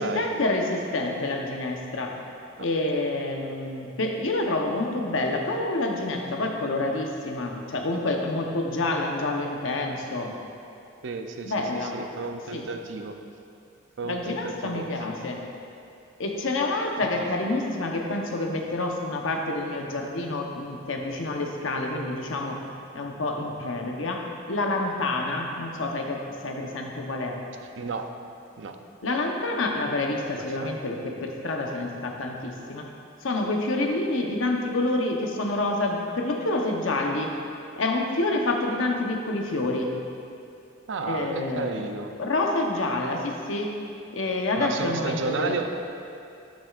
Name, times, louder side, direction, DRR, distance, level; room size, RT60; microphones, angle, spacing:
voice 1, 0.0-2.1 2.6-10.3 11.4-12.0 12.5-12.6 14.0-15.4 16.2-22.6 22.9-27.4 29.0-32.9 33.2-37.3 37.7-39.9 41.0-41.9 42.2-43.7 44.1-45.6, left 2 dB, 90° left, 1 dB, 0.9 m, -28 dB
voice 2, 11.0-11.5 11.8-13.2 14.0-14.9 17.2-17.3 27.8-28.1 28.6-28.8 30.3-30.7 40.9-42.1 44.6-45.7, right 4 dB, 65° right, 6 dB, 0.6 m, -32 dB
10.0 x 8.8 x 2.5 m, 2.6 s
head